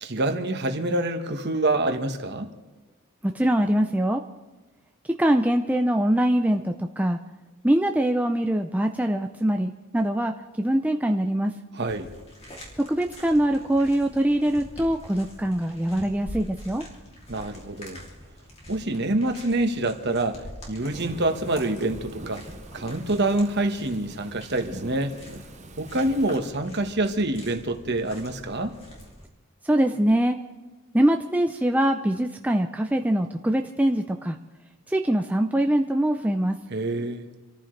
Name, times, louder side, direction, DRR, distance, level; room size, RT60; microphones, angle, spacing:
voice 1, 0.0-2.5 11.7-12.1 17.3-18.1 18.7-22.4 22.7-25.2 25.8-28.7 36.7-37.3, right 2 dB, 50° right, 6 dB, 1.4 m, -26 dB
voice 2, 3.2-4.2 5.1-7.2 7.6-11.6 12.8-16.8 29.6-30.4 30.9-34.4 34.9-36.6, right 1 dB, 5° right, 4 dB, 0.5 m, -23 dB
sound 1, 11.9-29.3, equal, 30° left, 2.9 m, -45 dB
Thunderstorm / Rain, 20.9-26.4, right 2 dB, 30° right, 0.8 m, -43 dB
27.0 x 14.0 x 3.3 m, 1.1 s
head